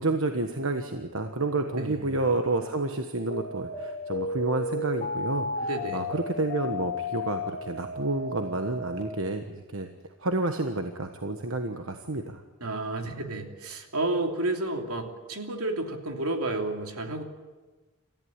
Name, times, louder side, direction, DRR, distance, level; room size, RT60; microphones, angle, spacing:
voice 1, 0.0-9.9 10.2-12.4, right 2 dB, 60° right, 6 dB, 1.3 m, -30 dB
voice 2, 1.8-2.1 5.6-6.1 12.6-17.2, right 2 dB, 80° right, 4 dB, 3.0 m, -31 dB
sound 1, 3.1-9.0, left 2 dB, 30° left, 2.5 m, -34 dB
28.0 x 14.5 x 9.7 m, 1.3 s
head